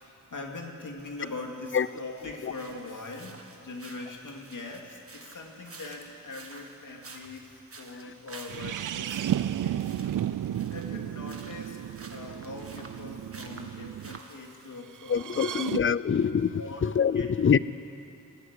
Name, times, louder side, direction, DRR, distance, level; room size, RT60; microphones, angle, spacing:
voice 1, 0.0-9.9 10.2-15.7 16.6-17.3, left 3 dB, 70° left, 1 dB, 2.6 m, -42 dB
sound 1, 1.0-14.7, right 3 dB, 45° right, 1.7 m, -51 dB
sound 2, 8.5-14.2 15.0-15.8, right 11 dB, 75° right, 0.5 m, -33 dB
voice 2, 15.1-17.6, left 7 dB, 40° left, 17 dB, 0.5 m, -25 dB
21.0 x 13.0 x 9.8 m, 2.9 s
wide cardioid pair, 100°, 32 cm